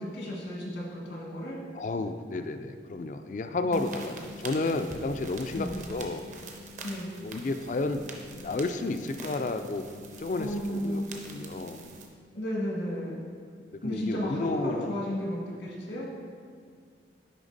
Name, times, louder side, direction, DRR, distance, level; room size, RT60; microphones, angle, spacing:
voice 1, 0.0-1.6 3.7-3.9 5.5-5.7 6.8-7.1 10.4-11.0 12.3-13.2 13.8-16.1, equal, 80° left, -4 dB, 1.6 m, -33 dB
voice 2, 1.7-6.2 7.2-8.1 8.3-9.9 10.2-11.8 13.7-14.9, left 3 dB, 45° left, 8 dB, 0.3 m, -32 dB
sound 1, 3.7-12.1, right 1 dB, 40° right, 0.6 m, -45 dB
10.0 x 3.5 x 4.0 m, 2.1 s
head